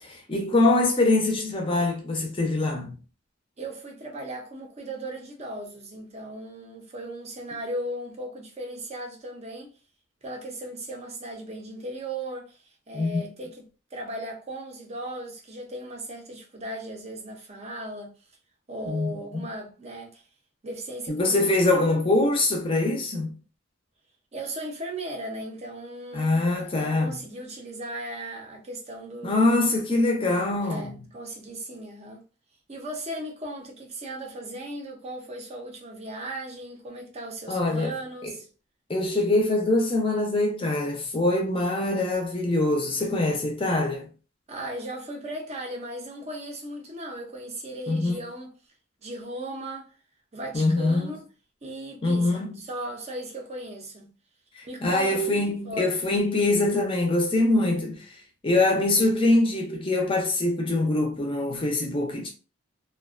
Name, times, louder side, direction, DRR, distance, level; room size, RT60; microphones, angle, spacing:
voice 1, 0.0-3.0 12.9-13.2 18.9-19.5 21.1-23.3 26.1-27.1 29.2-31.0 37.5-37.9 38.2-38.3 38.9-44.1 47.9-48.2 50.5-51.1 52.0-52.6 54.5-58.0 58.4-62.3, left 2 dB, 25° left, 0.5 m, -24 dB
voice 2, 3.6-9.7 10.2-12.6 12.9-18.1 18.7-20.2 20.6-22.0 24.3-29.6 30.6-32.2 32.7-38.5 44.5-48.5 49.0-49.9 50.3-51.3 51.6-54.1 54.6-55.9, right 1 dB, 30° right, 0.5 m, -37 dB
2.4 x 2.2 x 2.4 m
head